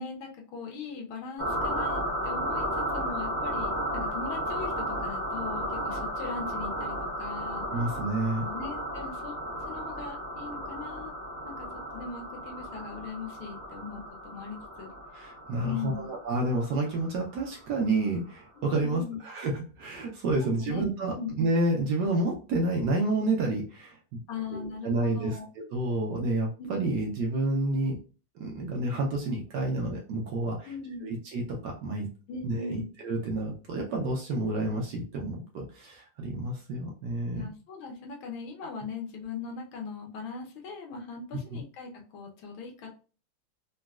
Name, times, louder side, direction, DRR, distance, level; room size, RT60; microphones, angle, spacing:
voice 1, 0.0-7.7 8.4-9.3 9.6-11.1 11.4-11.7 11.9-14.9 15.6-16.1 18.7-19.2 20.4-20.8 21.1-21.3 24.3-25.5 30.6-31.1 32.3-32.9 37.3-42.9, left 4 dB, 75° left, 1 dB, 1.6 m, -39 dB
sound 1, 1.4-17.6, equal, 20° left, 0.7 m, -34 dB
voice 2, 7.7-8.4 15.1-24.2 24.5-25.4 25.7-28.0 28.4-30.7 31.0-32.1 32.4-37.5 41.5-41.6, right 2 dB, 70° right, -1 dB, 1.0 m, -29 dB
3.9 x 2.2 x 2.3 m, 0.37 s
omnidirectional pair, 2.3 m